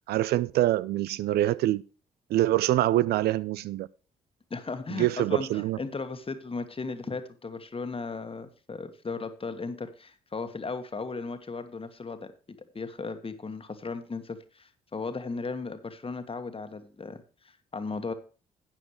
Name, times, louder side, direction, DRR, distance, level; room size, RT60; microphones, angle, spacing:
voice 1, 0.1-1.8 2.3-3.9 5.0-5.8, right 14 dB, 60° right, 0.4 m, -25 dB
voice 2, 4.5-12.3 12.7-18.1, left 4 dB, 30° left, 1.6 m, -36 dB
13.0 x 9.0 x 3.2 m
figure-of-eight pair, 40°, 18 cm